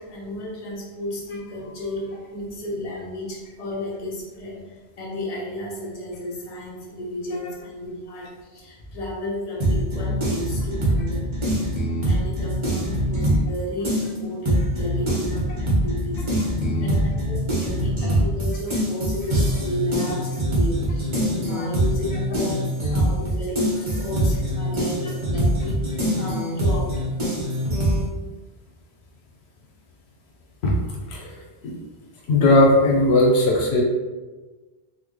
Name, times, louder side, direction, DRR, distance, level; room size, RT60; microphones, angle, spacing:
voice 1, 0.0-16.3 16.8-21.1 21.5-22.7 22.9-26.9, left 1 dB, 40° left, -5 dB, 0.9 m, -33 dB
sound 1, 9.6-13.6 13.8-28.0, right 1 dB, 30° right, 0.8 m, -23 dB
voice 2, 16.5-17.1 30.6-30.8 31.1-31.3 31.6-31.7 32.3-33.8, left 1 dB, 85° left, 0 dB, 0.9 m, -18 dB
4.1 x 2.1 x 3.1 m, 1.3 s
omnidirectional pair, 1.1 m